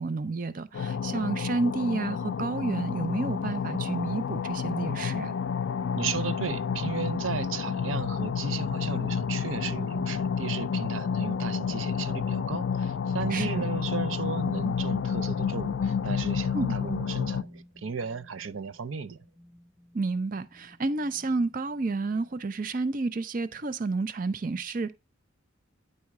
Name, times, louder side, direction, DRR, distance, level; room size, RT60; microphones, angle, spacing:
voice 1, 0.0-5.3 13.3-13.7 16.5-16.7 19.9-24.9, right 3 dB, 45° right, 0.5 m, -30 dB
Working Hyperdrive Engine, 0.7-17.4, left 6 dB, 65° left, 0.4 m, -30 dB
voice 2, 5.9-19.2, right 5 dB, 85° right, 0.6 m, -35 dB
sound 1, 7.8-11.0 13.2-22.7, equal, ahead, 0.8 m, -49 dB
9.6 x 4.2 x 4.7 m
head